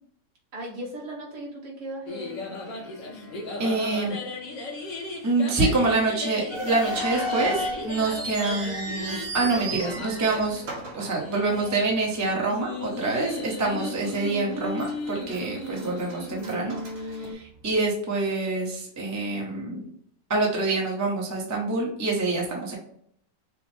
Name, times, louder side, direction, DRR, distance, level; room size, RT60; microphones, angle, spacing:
voice 1, 0.5-2.8 3.1-4.1, right 1 dB, 70° right, -2 dB, 1.8 m, -39 dB
sound 1, 2.1-17.3, left 2 dB, 85° left, 1.7 m, -36 dB
voice 2, 3.6-4.1 5.2-10.6 10.9-19.9 20.3-22.8, right 3 dB, 20° right, -2 dB, 0.5 m, -26 dB
sound 2, 6.5-11.8 12.1-12.2 12.9-13.2 13.6-13.7 14.3-14.9 15.3-17.7, equal, 85° right, 1.9 m, -34 dB
5.6 x 2.1 x 3.2 m, 0.68 s
omnidirectional pair, 1.9 m